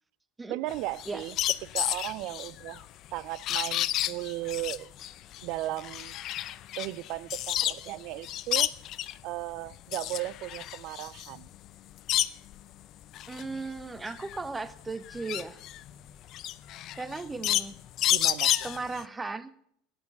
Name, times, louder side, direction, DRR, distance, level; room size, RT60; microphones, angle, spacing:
voice 1, 0.5-1.4 1.6-2.9 3.1-4.9 5.4-6.1 6.8-8.7 9.2-11.5 18.1-18.5, right 16 dB, 65° right, 22 dB, 0.4 m, -36 dB
sound 1, 0.7-7.9 8.2-9.2 9.7-12.6 13.0-19.0, left 13 dB, 50° left, 0.5 m, -31 dB
voice 2, 13.3-15.6 16.9-17.8 18.6-19.5, right 3 dB, 15° right, 14 dB, 0.8 m, -36 dB
9.0 x 8.4 x 8.2 m, 0.69 s
supercardioid pair, 100°, 0 cm